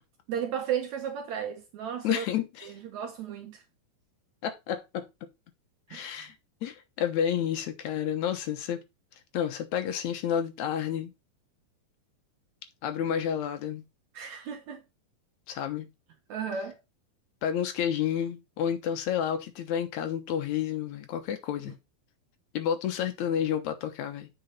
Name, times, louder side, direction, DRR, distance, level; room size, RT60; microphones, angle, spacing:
voice 1, 0.3-2.3 2.6-3.6 5.9-6.2 14.1-14.8 16.3-16.8, right 8 dB, 70° right, 1.9 m, -34 dB
voice 2, 2.0-2.7 4.4-5.1 5.9-6.4 6.6-8.8 9.3-11.1 12.8-13.8 15.5-15.9 17.4-21.7 22.5-24.3, left 9 dB, 65° left, 2.1 m, -30 dB
7.9 x 5.3 x 4.2 m
omnidirectional pair, 4.2 m